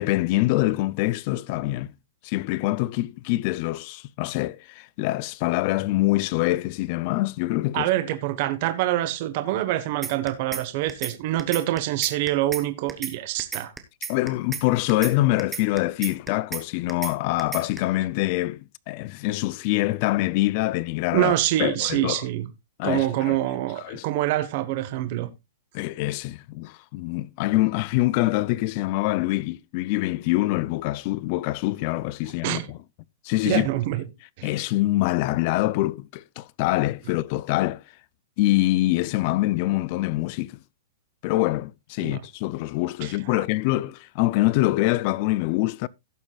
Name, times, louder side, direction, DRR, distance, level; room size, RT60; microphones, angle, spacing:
voice 1, 0.0-1.9 2.2-7.9 14.1-18.6 18.9-21.3 21.6-22.2 22.8-23.4 23.8-24.0 25.7-32.8 33.2-33.7 34.4-37.8 38.4-40.6 41.2-45.9, left 18 dB, 35° left, 0.4 m, -25 dB
voice 2, 7.7-13.7 21.1-22.5 22.8-25.3 32.4-32.7 33.4-34.0 34.4-34.5 42.0-42.2 43.0-43.1, right 14 dB, 35° right, 1.2 m, -25 dB
sound 1, 10.0-10.6 10.9-11.1 11.4-12.6 12.9-13.1 13.4-14.6 14.9-15.1 15.4-16.6 16.9-17.1 17.4-17.8, right 6 dB, 10° right, 1.0 m, -32 dB
17.0 x 7.2 x 2.4 m
hypercardioid pair, 170°, 0 cm